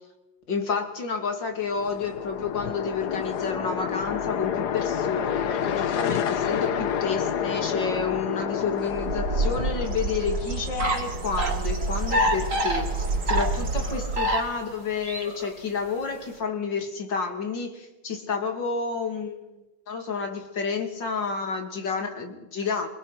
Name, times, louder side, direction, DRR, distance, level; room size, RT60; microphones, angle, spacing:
voice 1, 0.5-19.6 19.9-22.9, left 5 dB, 85° left, 5 dB, 3.5 m, -30 dB
sound 1, 1.6-10.6, left 8 dB, 65° left, 1.6 m, -29 dB
Bird, 8.9-14.5, right 3 dB, 75° right, 3.9 m, -29 dB
sound 2, 10.8-11.6 12.0-14.7 15.0-15.5, equal, 45° right, 3.1 m, -27 dB
26.0 x 20.5 x 6.0 m, 0.97 s
omnidirectional pair, 1.9 m